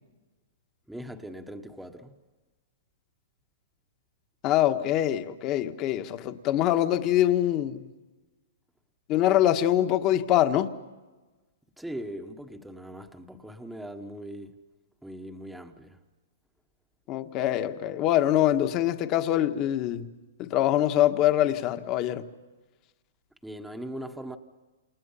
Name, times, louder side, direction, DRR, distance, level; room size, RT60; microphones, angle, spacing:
voice 1, 0.9-2.1 11.8-14.6 15.0-16.0 23.4-24.4, right 1 dB, ahead, 1.2 m, -40 dB
voice 2, 4.4-7.8 9.1-10.7 17.1-20.1 20.4-22.3, left 12 dB, 30° left, 1.5 m, -24 dB
29.0 x 28.5 x 5.7 m
hypercardioid pair, 155°, 0 cm